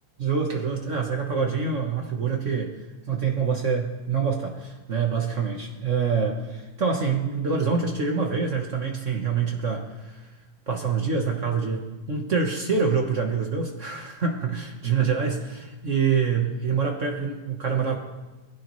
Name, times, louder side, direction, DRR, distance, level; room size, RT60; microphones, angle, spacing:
voice 1, 0.2-2.8 3.1-10.2 10.7-18.0, right 5 dB, 90° right, 1 dB, 0.6 m, -26 dB
22.5 x 16.0 x 3.2 m, 1.2 s
omnidirectional pair, 3.4 m